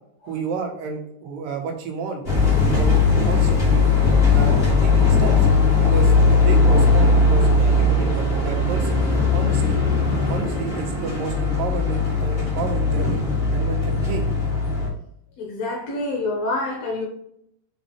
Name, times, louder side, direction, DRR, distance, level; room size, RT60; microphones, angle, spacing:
voice 1, 0.3-2.2 2.7-3.0 3.2-3.9 4.3-5.5 5.8-9.8 10.3-13.3 13.5-14.2, right 5 dB, 80° right, 2.7 m, -31 dB
sound 1, 2.2-14.9, left 3 dB, 30° left, 1.1 m, -18 dB
voice 2, 15.4-17.1, left 2 dB, 65° left, 1.9 m, -26 dB
5.9 x 5.3 x 3.1 m
omnidirectional pair, 4.0 m